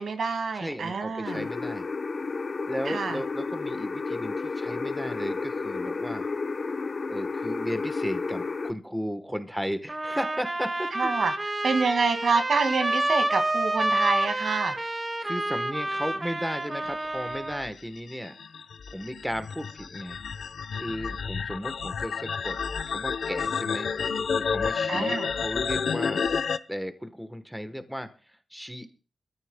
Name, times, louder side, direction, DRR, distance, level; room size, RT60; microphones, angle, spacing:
voice 1, 0.0-1.5 2.9-3.2 10.9-11.3 11.6-14.8 24.9-25.3, right 4 dB, 70° right, 8 dB, 2.0 m, -27 dB
voice 2, 0.5-1.9 2.7-6.3 7.1-11.1 15.2-18.4 18.9-20.2 20.8-22.6 22.9-23.9 24.4-26.2 26.7-28.1 28.5-28.9, equal, ahead, 9 dB, 1.1 m, -35 dB
sound 1, 1.2-8.7, left 4 dB, 40° left, 0.7 m, -32 dB
sound 2, 9.9-17.7, right 1 dB, 20° right, 1.2 m, -29 dB
sound 3, 17.3-26.6, left 6 dB, 75° left, 0.8 m, -30 dB
27.0 x 14.5 x 2.2 m, 0.35 s
wide cardioid pair, 160°, 0 cm